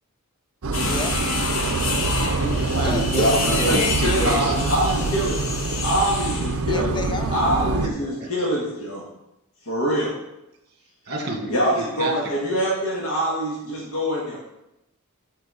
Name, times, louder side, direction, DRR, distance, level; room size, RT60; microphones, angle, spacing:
sound 1, 0.6-7.9, right 3 dB, 70° right, 0.6 m, -25 dB
sound 2, 0.7-6.6, left 4 dB, 65° left, 1.0 m, -28 dB
voice 1, 0.7-1.5 2.8-3.7 6.6-7.4, left 3 dB, 20° left, 6 dB, 0.6 m, -32 dB
voice 2, 2.2-4.5 8.0-8.3 11.1-12.1, right 1 dB, 50° right, 2 dB, 1.7 m, -29 dB
voice 3, 3.2-5.4 5.8-6.9 7.3-9.0 9.6-10.2 11.5-14.4, equal, 85° left, -5 dB, 1.7 m, -24 dB
8.1 x 4.5 x 5.5 m, 0.88 s
head